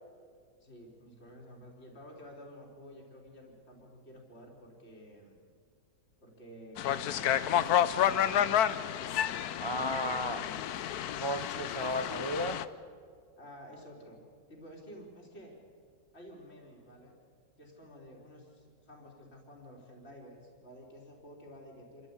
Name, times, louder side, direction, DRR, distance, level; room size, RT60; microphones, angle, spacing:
voice 1, 0.6-5.4 6.2-8.6 9.7-11.0 13.4-14.2 14.5-15.6 16.1-17.2 17.6-22.1, equal, 35° left, -1 dB, 3.8 m, -51 dB
sound 1, 6.8-12.6, left 10 dB, 65° left, 1.1 m, -30 dB
voice 2, 9.6-10.4 11.2-12.6, equal, 35° right, 8 dB, 0.4 m, -34 dB
27.5 x 13.5 x 8.7 m, 2.1 s
omnidirectional pair, 1.9 m